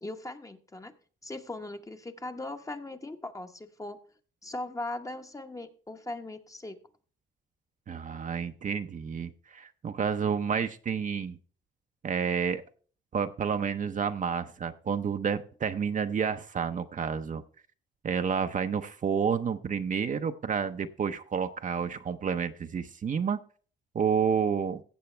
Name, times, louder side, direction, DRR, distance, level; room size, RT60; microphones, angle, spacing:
voice 1, 0.0-0.9 1.2-4.0 4.4-6.8, left 2 dB, 15° left, 7 dB, 0.9 m, -39 dB
voice 2, 7.9-11.4 12.0-12.6 13.1-17.4 18.0-23.4 23.9-24.8, right 6 dB, 40° right, 8 dB, 0.7 m, -30 dB
15.5 x 6.8 x 3.2 m, 0.42 s
cardioid pair, 90°, 20 cm